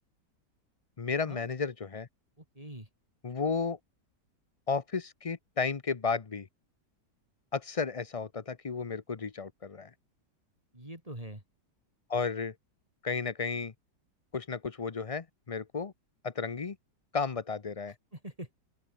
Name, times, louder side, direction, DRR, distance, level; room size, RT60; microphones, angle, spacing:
voice 1, 1.0-2.1 3.2-3.8 4.7-6.5 7.5-9.9 12.1-12.5 13.0-13.7 14.3-15.9 16.2-16.8 17.1-17.9, left 5 dB, 40° left, 0.5 m, -33 dB
voice 2, 2.4-2.9 10.7-11.4 18.1-18.6, right 1 dB, 20° right, 4.5 m, -44 dB
open air
omnidirectional pair, 1.8 m